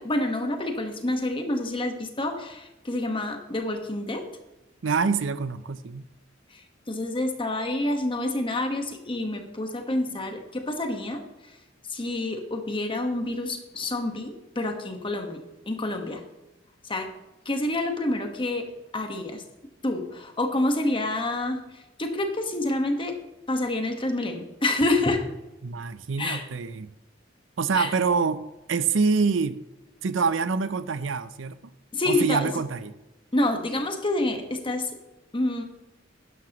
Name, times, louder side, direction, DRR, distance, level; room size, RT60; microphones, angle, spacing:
voice 1, 0.0-4.2 6.5-11.2 11.9-15.4 15.7-16.2 16.8-17.1 17.4-18.7 18.9-19.4 19.8-23.1 23.5-25.2 26.2-26.5 27.7-27.9 31.9-32.5 33.3-34.9 35.3-35.6, left 2 dB, 25° left, 5 dB, 1.4 m, -28 dB
voice 2, 4.8-6.0 25.6-26.9 27.6-29.6 30.0-31.6 32.1-32.9, right 5 dB, 75° right, 14 dB, 0.6 m, -26 dB
12.0 x 11.0 x 3.0 m, 1.0 s
head